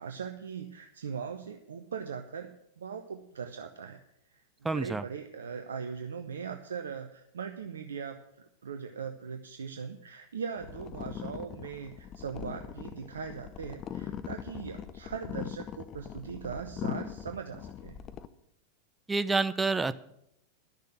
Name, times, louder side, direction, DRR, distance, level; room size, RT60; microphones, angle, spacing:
voice 1, 0.0-2.5 2.8-4.0 4.3-4.4 4.7-18.0, right 6 dB, 70° right, 6 dB, 0.8 m, -40 dB
voice 2, 4.6-5.0 19.1-19.9, right 3 dB, 10° right, 13 dB, 0.6 m, -28 dB
sound 1, 10.6-18.3, left 9 dB, 30° left, 0.7 m, -41 dB
12.0 x 6.6 x 9.1 m, 0.77 s
figure-of-eight pair, 90°, 0 cm